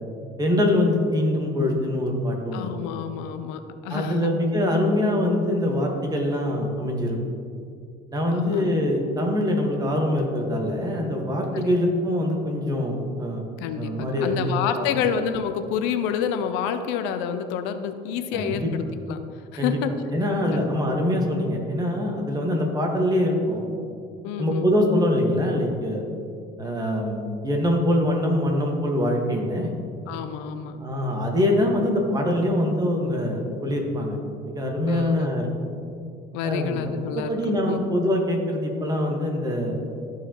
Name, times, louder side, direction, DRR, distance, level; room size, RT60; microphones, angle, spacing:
voice 1, 0.4-2.7 3.9-7.2 8.1-13.4 13.8-14.5 18.3-18.7 19.6-19.8 20.1-23.7 24.4-26.0 26.6-29.7 30.8-34.2 34.4-35.4 36.4-39.8, left 1 dB, 20° right, 0 dB, 1.5 m, -24 dB
voice 2, 2.5-4.3 8.3-8.8 11.5-11.8 13.6-18.8 19.1-19.2 19.5-19.9 20.5-20.7 24.2-24.7 30.1-30.8 34.9-35.3 36.3-37.3 37.6-37.8, left 8 dB, 85° left, 9 dB, 0.5 m, -28 dB
13.0 x 4.7 x 3.0 m, 2.4 s
supercardioid pair, 100°, 18 cm